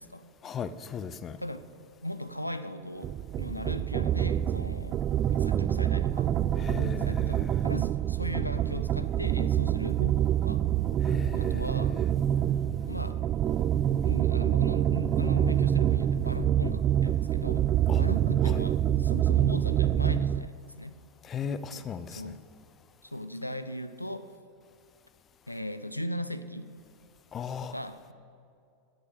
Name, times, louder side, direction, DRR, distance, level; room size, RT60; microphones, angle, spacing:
voice 1, 0.4-1.4 6.6-7.7 11.0-12.1 17.9-18.0 18.4-18.7 21.2-22.3 27.3-27.8, left 7 dB, 25° left, 14 dB, 0.6 m, -37 dB
voice 2, 2.0-5.0 5.3-6.3 7.1-10.6 11.3-12.0 12.9-13.2 14.0-17.7 18.0-20.9 21.7-21.8 22.2-22.4 23.0-24.3 25.5-26.7 27.6-28.1, left 1 dB, 85° left, 12 dB, 0.6 m, -38 dB
sound 1, 3.0-20.5, right 10 dB, 30° right, 0.3 m, -26 dB
16.5 x 6.7 x 8.4 m, 2.4 s
figure-of-eight pair, 90°, 0 cm